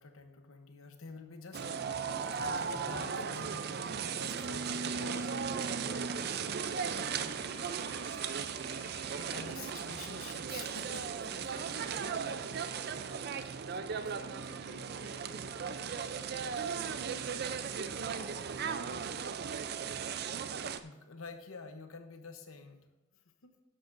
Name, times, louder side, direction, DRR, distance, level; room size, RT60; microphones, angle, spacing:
voice 1, 0.0-5.2 8.1-8.2 9.3-11.5 13.7-13.8 19.6-19.9 20.8-22.8 23.4-23.5, left 4 dB, 80° left, 7 dB, 0.9 m, -48 dB
sound 1, 1.5-20.8, right 6 dB, 50° right, 0.4 m, -37 dB
voice 2, 4.5-8.6 9.3-9.4 11.5-12.6 13.1-19.9, left 1 dB, 50° left, -7 dB, 3.7 m, -54 dB
sound 2, 5.4-9.6, right 2 dB, 80° right, 3.9 m, -55 dB
12.5 x 10.0 x 2.6 m, 1.0 s
head